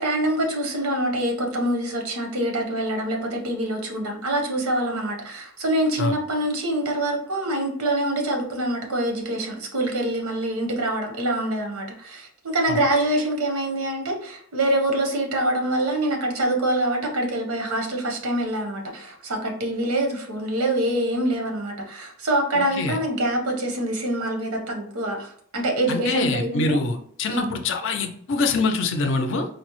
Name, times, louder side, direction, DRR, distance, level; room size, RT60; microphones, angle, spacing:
voice 1, 0.0-26.8 27.3-27.6, right 1 dB, 85° right, 2 dB, 0.8 m, -25 dB
voice 2, 25.9-29.5, left 3 dB, 55° left, 6 dB, 0.4 m, -24 dB
4.2 x 2.0 x 3.0 m, 0.62 s
head